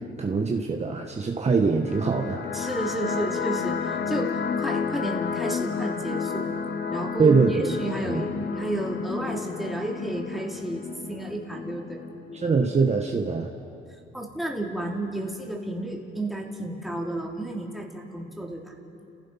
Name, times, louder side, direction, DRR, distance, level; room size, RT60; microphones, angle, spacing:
voice 1, 0.2-2.4 7.2-7.7 8.0-8.2 12.3-13.5, right 4 dB, 35° right, 3 dB, 1.4 m, -23 dB
sound 1, 1.8-12.8, left 6 dB, 65° left, 1.3 m, -31 dB
voice 2, 2.5-6.5 6.9-12.0 14.1-18.7, right 1 dB, ahead, -1 dB, 3.2 m, -32 dB
30.0 x 16.0 x 5.8 m, 2.7 s
cardioid pair, 90°, 20 cm